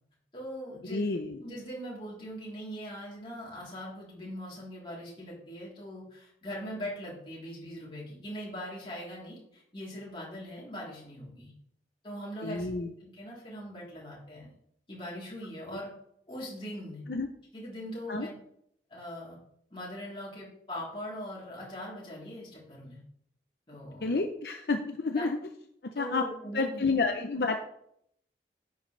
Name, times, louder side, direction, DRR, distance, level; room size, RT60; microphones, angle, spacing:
voice 1, 0.3-1.1 1.4-11.5 12.0-14.5 14.9-15.9 16.3-17.0 17.5-18.3 18.9-19.4 19.7-23.0 23.7-24.2 25.1-25.3 25.9-26.9, equal, 30° left, -6 dB, 3.4 m, -41 dB
voice 2, 0.9-1.4 12.4-12.9 17.1-17.3 18.1-18.3 24.0-25.4 26.0-26.2 26.5-27.6, left 3 dB, 65° left, 4 dB, 0.7 m, -29 dB
10.5 x 8.0 x 3.3 m, 0.71 s
head